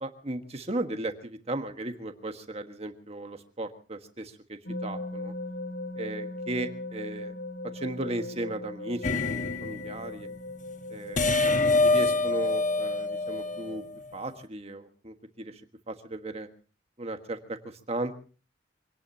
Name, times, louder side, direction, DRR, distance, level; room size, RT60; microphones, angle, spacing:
voice 1, 0.0-5.3 5.9-7.3 7.7-10.3 10.9-13.8 14.1-15.6 15.9-16.5 17.0-18.1, right 2 dB, 35° right, 7 dB, 1.5 m, -36 dB
sound 1, 4.7-13.8, left 2 dB, 85° left, 2.4 m, -39 dB
sound 2, 9.0-10.0 11.2-14.0, left 3 dB, 45° left, 1.1 m, -25 dB
25.5 x 18.0 x 2.8 m, 0.37 s
head